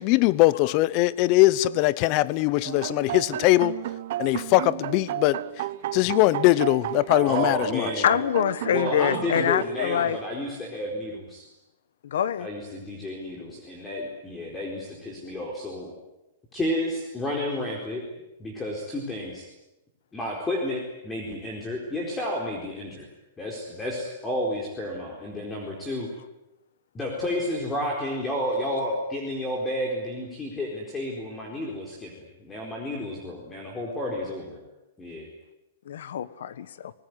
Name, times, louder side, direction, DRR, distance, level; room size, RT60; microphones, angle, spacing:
voice 1, 0.0-3.7 4.2-5.6 5.9-7.9, left 18 dB, 35° left, 0.8 m, -21 dB
sound 1, 2.6-9.6, right 13 dB, 55° right, 0.8 m, -33 dB
voice 2, 7.2-8.1 8.7-11.4 12.4-15.9 16.5-18.0 18.4-19.5 20.1-23.1 23.4-26.1 26.9-34.6 35.0-35.3, left 1 dB, 10° left, 4.4 m, -31 dB
voice 3, 8.0-10.2 12.0-12.5 35.9-36.9, left 9 dB, 75° left, 1.4 m, -25 dB
25.0 x 20.0 x 9.7 m
hypercardioid pair, 160°, 0 cm